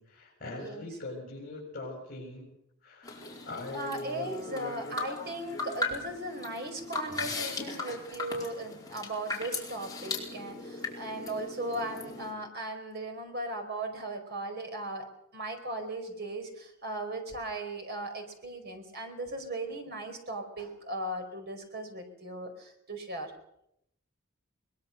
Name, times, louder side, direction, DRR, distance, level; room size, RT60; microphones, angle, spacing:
voice 1, 0.0-2.5 2.8-5.0 7.0-7.3, left 2 dB, 45° left, -4 dB, 7.0 m, -42 dB
sound 1, 3.0-12.3, left 3 dB, 20° left, 4.7 m, -38 dB
voice 2, 3.7-15.1 15.3-23.3, right 1 dB, 50° right, 5 dB, 4.9 m, -37 dB
22.5 x 21.0 x 6.7 m, 0.76 s
head